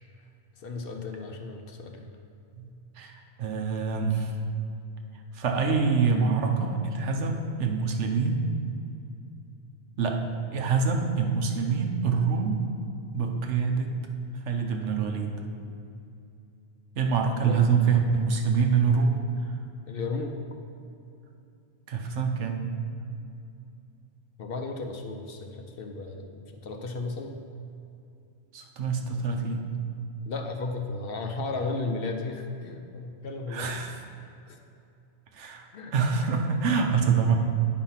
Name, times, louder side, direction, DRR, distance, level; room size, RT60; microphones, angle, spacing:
voice 1, 0.6-2.1 17.4-17.6 19.9-20.4 24.4-27.4 30.2-33.7 34.5-34.6 35.7-35.9, left 3 dB, 60° left, 4 dB, 0.8 m, -34 dB
voice 2, 3.0-4.3 5.3-8.5 10.0-10.2 10.5-12.6 13.1-13.9 14.3-15.3 17.0-19.2 19.4-19.5 21.9-22.6 28.5-29.6 33.5-34.0 35.3-37.3, right 5 dB, 75° right, 3 dB, 1.1 m, -25 dB
9.1 x 4.3 x 5.7 m, 2.6 s
omnidirectional pair, 1.2 m